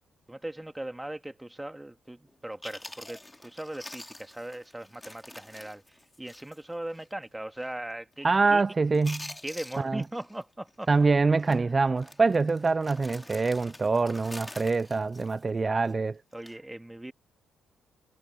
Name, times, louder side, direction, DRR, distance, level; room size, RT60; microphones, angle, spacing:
voice 1, 0.3-5.8 6.2-8.6 9.4-10.9 11.5-11.7 16.3-17.1, right 1 dB, 10° right, 1.9 m, -39 dB
Chewing mastication, 2.3-2.4 2.6-6.7 6.9-7.1 7.6-7.9 8.1-8.6 8.9-10.4 10.7-11.0 11.4-11.6 12.0-15.9 16.3-16.6, left 1 dB, 10° left, 3.6 m, -46 dB
voice 2, 8.2-9.3 9.8-10.0 10.9-16.2, right 4 dB, 30° right, 0.3 m, -25 dB
cardioid pair, 90°, 0 cm